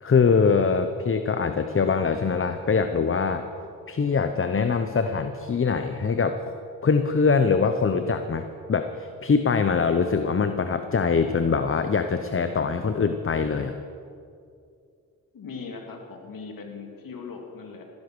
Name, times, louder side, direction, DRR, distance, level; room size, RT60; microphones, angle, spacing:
voice 1, 0.0-3.4 3.9-6.5 6.8-13.8, left 5 dB, 40° left, 8 dB, 0.8 m, -23 dB
voice 2, 15.3-17.8, left 5 dB, 80° left, 2 dB, 2.4 m, -39 dB
17.0 x 10.5 x 6.2 m, 2.4 s
cardioid pair, 65°, 34 cm